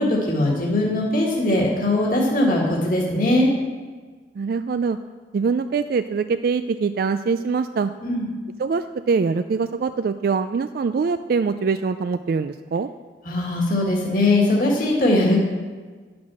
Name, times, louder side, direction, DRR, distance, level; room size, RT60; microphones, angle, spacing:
voice 1, 0.0-3.5 8.0-8.3 13.3-15.4, left 1 dB, 50° left, -2 dB, 1.8 m, -20 dB
voice 2, 4.4-5.0 5.3-7.9 8.6-12.9, right 5 dB, 55° right, 10 dB, 0.3 m, -23 dB
10.5 x 6.0 x 6.3 m, 1.4 s
head